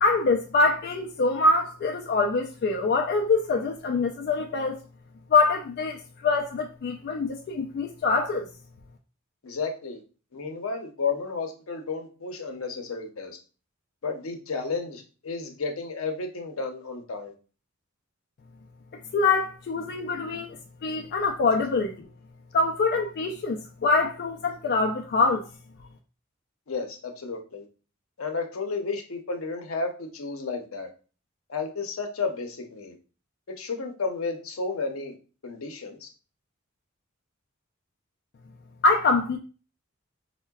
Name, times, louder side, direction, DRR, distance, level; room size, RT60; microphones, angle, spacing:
voice 1, 0.0-4.8 5.3-8.5 19.1-20.6 20.8-22.1 22.5-25.5 38.8-39.4, left 3 dB, 50° left, 0.3 m, -24 dB
voice 2, 9.4-10.0 10.3-13.4 14.0-17.3 26.7-27.7 28.2-30.9 31.5-32.9 33.6-35.1 35.4-36.1, left 4 dB, 80° left, 0.7 m, -32 dB
4.4 x 2.1 x 2.2 m
head